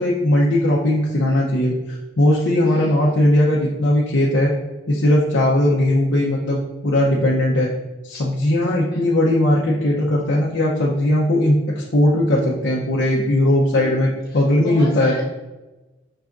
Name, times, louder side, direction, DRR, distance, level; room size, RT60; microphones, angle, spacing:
voice 1, 0.0-4.5 4.9-7.7 8.0-15.2, left 1 dB, 80° left, -5 dB, 0.6 m, -18 dB
voice 2, 2.6-3.1 8.1-8.2 8.9-9.1 13.7-14.0 14.3-15.2, left 2 dB, 30° left, -9 dB, 0.8 m, -36 dB
5.5 x 2.5 x 3.5 m, 1.1 s
head